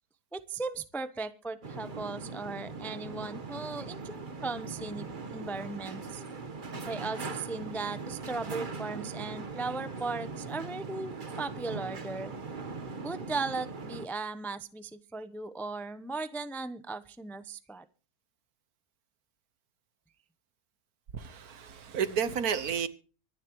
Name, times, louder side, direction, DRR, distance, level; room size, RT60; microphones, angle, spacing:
voice 1, 0.3-6.2 6.9-12.3 13.0-17.8, right 3 dB, ahead, 0.5 m, -37 dB
sound 1, 1.6-14.1, right 4 dB, 35° right, 1.2 m, -40 dB
voice 2, 21.1-22.9, right 7 dB, 70° right, 1.6 m, -31 dB
25.0 x 11.0 x 3.1 m
omnidirectional pair, 1.7 m